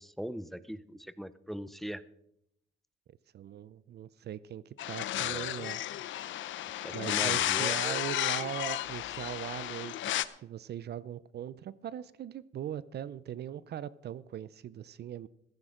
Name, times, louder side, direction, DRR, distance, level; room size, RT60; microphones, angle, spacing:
voice 1, 0.0-2.0 5.1-5.5 6.8-8.0, equal, ahead, 15 dB, 0.6 m, -40 dB
voice 2, 3.3-5.8 6.9-10.0 10.4-15.3, right 10 dB, 55° right, 19 dB, 0.5 m, -40 dB
sound 1, 4.8-10.3, left 13 dB, 75° left, 0.6 m, -33 dB
15.0 x 14.0 x 3.7 m, 0.74 s
cardioid pair, 90°, 20 cm